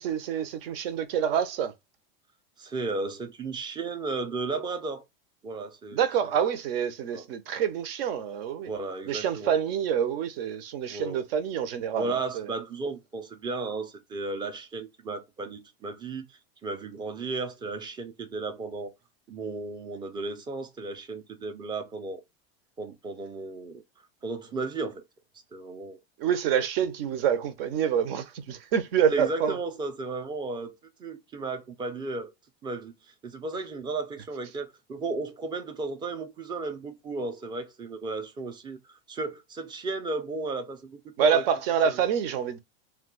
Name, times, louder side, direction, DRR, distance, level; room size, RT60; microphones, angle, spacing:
voice 1, 0.0-1.7 5.9-8.7 9.1-12.5 26.2-29.6 41.2-42.6, right 8 dB, 65° right, 0.7 m, -27 dB
voice 2, 2.6-5.0 5.4-6.0 7.1-7.2 8.6-9.5 10.9-11.3 12.0-18.9 19.3-22.2 22.8-23.8 24.2-25.0 25.5-26.0 29.1-30.7 31.0-32.3 32.6-41.4, right 3 dB, 15° right, 0.4 m, -34 dB
2.3 x 2.3 x 3.7 m
supercardioid pair, 130°, 31 cm